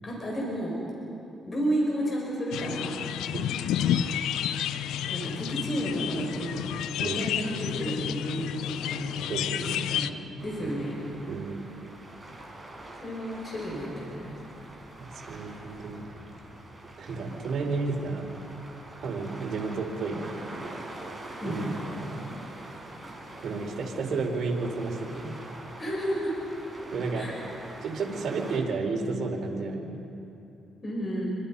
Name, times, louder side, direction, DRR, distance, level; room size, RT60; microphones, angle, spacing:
voice 1, 0.0-0.8 1.5-3.4 3.8-4.2 5.1-6.7 7.0-10.1 10.4-11.0 13.0-14.4 21.4-21.7 25.8-26.3 27.1-27.5 30.8-31.3, equal, 35° left, -3 dB, 7.2 m, -32 dB
sound 1, 2.5-10.1, left 10 dB, 85° left, 0.7 m, -30 dB
voice 2, 9.3-9.8 11.3-11.6 15.0-16.0 17.0-18.3 19.0-20.3 21.4-21.6 22.0-22.3 23.4-25.3 26.9-27.3 27.8-30.0, right 4 dB, 60° right, 1 dB, 4.4 m, -32 dB
sound 2, 10.4-28.6, right 1 dB, 10° right, 5.7 m, -44 dB
29.0 x 24.5 x 5.6 m, 2.9 s
cardioid pair, 90°, 0 cm